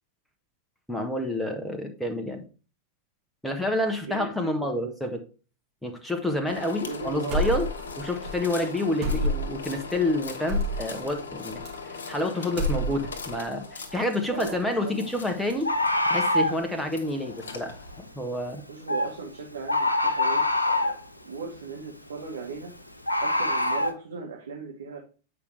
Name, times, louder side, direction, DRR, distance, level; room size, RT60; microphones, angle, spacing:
voice 1, 0.9-2.4 3.4-5.2 5.8-7.7 8.0-15.7 16.1-17.7 18.1-18.6, left 1 dB, ahead, 3 dB, 1.1 m, -28 dB
voice 2, 4.0-5.0 6.8-7.6 9.0-9.2 14.3-15.1 18.7-21.0 21.2-22.7 23.2-25.0, right 5 dB, 65° right, 1 dB, 1.2 m, -37 dB
sound 1, 6.5-18.1, left 5 dB, 65° left, 1.3 m, -40 dB
sound 2, 7.3-8.0 8.2-8.4 9.0-9.6 10.5-10.8 11.6-12.2 12.5-13.2, equal, 45° right, 2.4 m, -27 dB
Bird, 13.9-14.1 15.6-16.6 18.9-19.1 19.7-21.0 23.1-23.9, left 1 dB, 85° left, 0.8 m, -24 dB
8.5 x 5.0 x 3.2 m, 0.36 s
figure-of-eight pair, 90°, 0 cm